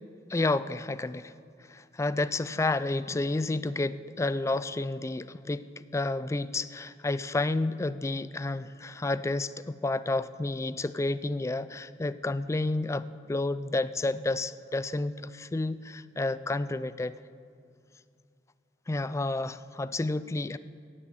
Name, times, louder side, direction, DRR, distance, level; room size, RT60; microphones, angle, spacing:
voice 1, 0.3-1.3 1.7-17.1 18.9-20.6, left 2 dB, 15° left, 16 dB, 0.3 m, -30 dB
16.5 x 10.5 x 7.6 m, 2.3 s
head